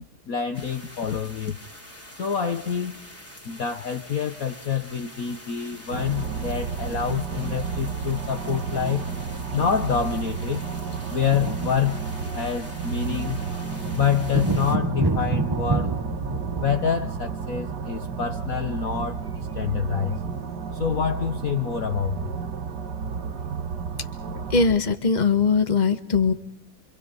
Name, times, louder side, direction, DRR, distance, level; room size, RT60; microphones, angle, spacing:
voice 1, 0.3-1.6 2.1-3.0 3.4-9.1 9.5-10.6 11.1-12.0 12.3-13.4 13.9-16.0 16.6-20.2 20.7-22.3, left 7 dB, 50° left, 6 dB, 1.4 m, -27 dB
sound 1, 0.5-14.8, left 1 dB, 5° left, 3.0 m, -45 dB
sound 2, 5.9-24.7, right 5 dB, 60° right, 1.8 m, -32 dB
sound 3, 6.1-7.7 9.0-9.1 9.3-9.5 9.8-21.9, right 3 dB, 20° right, 0.6 m, -32 dB
voice 2, 24.5-26.3, left 5 dB, 25° left, 7 dB, 1.6 m, -20 dB
27.0 x 26.5 x 5.4 m, 0.70 s
omnidirectional pair, 2.1 m